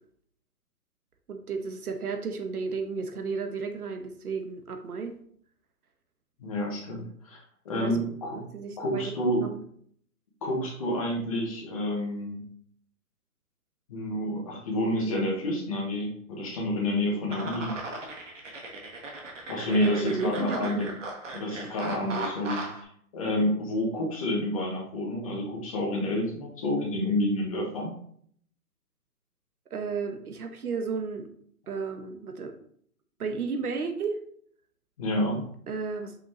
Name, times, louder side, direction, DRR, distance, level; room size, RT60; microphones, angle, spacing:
voice 1, 1.3-5.1 7.7-9.1 9.4-9.6 19.7-20.8 29.7-31.3 31.7-32.5 33.2-34.2 35.7-36.2, right 5 dB, 75° right, 6 dB, 1.2 m, -33 dB
voice 2, 6.4-7.4 7.6-8.4 8.8-9.4 10.4-12.4 13.9-17.7 19.5-20.9 21.3-22.6 23.1-27.9 35.0-35.4, left 1 dB, 25° left, -3 dB, 1.4 m, -29 dB
sound 1, 17.3-22.8, right 2 dB, 55° right, 1.6 m, -38 dB
5.7 x 5.7 x 3.0 m, 0.62 s
hypercardioid pair, 170°, 45 cm